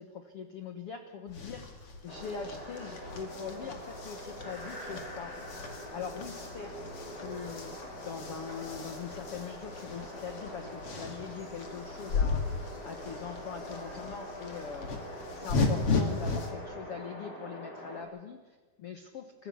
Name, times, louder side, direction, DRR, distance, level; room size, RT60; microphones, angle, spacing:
voice 1, 0.0-1.6 2.0-5.3 5.9-6.8 7.1-12.6 12.8-14.9 15.3-19.5, left 6 dB, 75° left, 6 dB, 1.3 m, -42 dB
sound 1, 1.3-16.5, left 4 dB, 40° left, 2.7 m, -36 dB
sound 2, 2.1-18.0, equal, 25° left, 5.6 m, -44 dB
29.5 x 15.0 x 7.2 m, 1.4 s
omnidirectional pair, 4.5 m